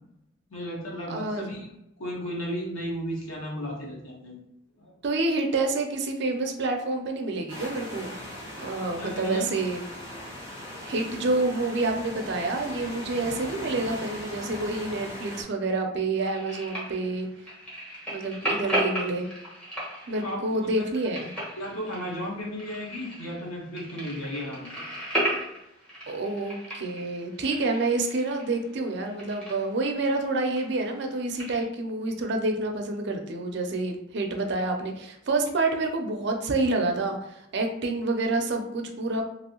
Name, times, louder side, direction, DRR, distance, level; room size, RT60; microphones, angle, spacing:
voice 1, 0.5-1.7 2.0-4.4 4.8-4.9 9.0-9.5 20.2-20.9 21.5-24.7, equal, 80° left, -2 dB, 1.0 m, -34 dB
voice 2, 1.1-1.5 5.0-8.1 8.6-9.8 10.8-17.3 18.1-19.3 20.1-21.3 26.1-39.2, right 2 dB, 55° right, 3 dB, 0.4 m, -28 dB
sound 1, 7.5-15.4, left 1 dB, 25° left, 1.2 m, -39 dB
sound 2, 16.2-31.6, right 1 dB, 5° left, 1.0 m, -35 dB
2.9 x 2.6 x 2.8 m, 0.82 s
head